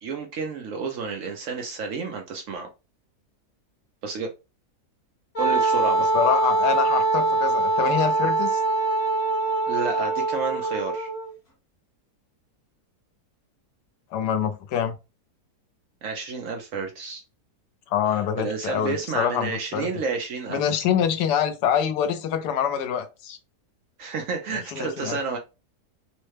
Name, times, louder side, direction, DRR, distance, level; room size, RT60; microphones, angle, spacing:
voice 1, 0.0-2.7 4.0-4.3 5.4-6.1 9.7-11.1 16.0-17.2 18.1-20.8 24.0-25.4, right 4 dB, 70° right, 0.8 m, -30 dB
Wind instrument woodwind instrument, 5.3-11.3, right 2 dB, 40° left, 1.1 m, -23 dB
voice 2, 6.1-8.6 14.1-14.9 17.9-19.9 20.5-23.4 24.7-25.2, left 8 dB, 85° left, 1.2 m, -25 dB
3.1 x 2.1 x 3.1 m
omnidirectional pair, 1.7 m